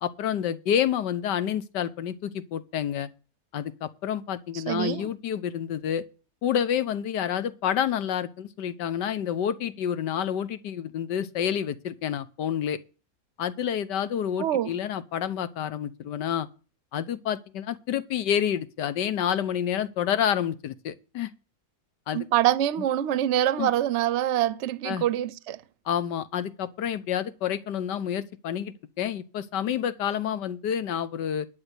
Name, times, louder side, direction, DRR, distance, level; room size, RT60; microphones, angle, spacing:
voice 1, 0.0-3.1 3.5-6.1 6.4-12.8 13.4-16.5 16.9-21.3 22.1-22.3 23.6-23.7 24.8-25.0 25.8-31.5, left 9 dB, 85° left, 1.6 m, -29 dB
voice 2, 4.5-5.1 14.4-14.7 22.1-25.6, right 12 dB, 55° right, 0.8 m, -25 dB
11.5 x 5.9 x 8.0 m
omnidirectional pair, 1.8 m